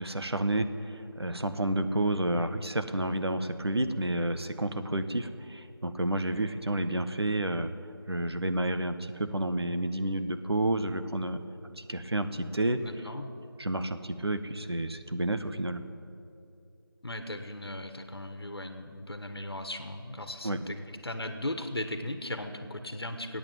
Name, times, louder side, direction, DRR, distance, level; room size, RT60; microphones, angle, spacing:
voice 1, 0.0-7.7 8.1-12.8 13.6-15.8 20.4-20.6, right 1 dB, 85° right, 9 dB, 1.2 m, -30 dB
voice 2, 12.8-13.3 17.0-23.4, left 1 dB, 75° left, 8 dB, 1.4 m, -37 dB
15.0 x 8.9 x 9.1 m, 2.7 s
figure-of-eight pair, 170°, 13 cm